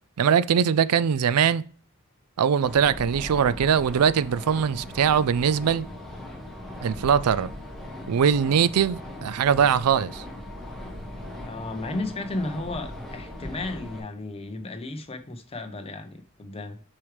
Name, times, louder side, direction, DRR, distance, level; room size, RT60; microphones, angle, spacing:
voice 1, 0.2-1.6 2.4-5.9 6.8-7.5 8.1-10.2, right 7 dB, 90° right, 0.4 m, -21 dB
sound 1, 2.6-14.0, left 1 dB, ahead, 1.7 m, -39 dB
voice 2, 11.4-16.8, left 2 dB, 25° left, 0.8 m, -34 dB
7.1 x 4.7 x 3.3 m
head